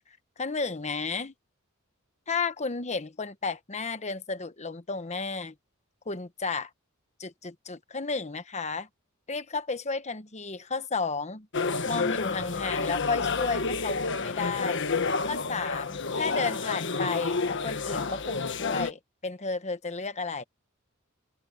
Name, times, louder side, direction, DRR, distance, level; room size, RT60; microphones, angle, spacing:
voice 1, 0.4-1.3 2.3-5.5 6.1-6.7 7.2-8.9 9.3-11.5 11.8-14.8 15.3-20.4, left 4 dB, 35° left, 1.1 m, -33 dB
sound 1, 11.5-18.9, left 4 dB, 60° left, 1.4 m, -29 dB
head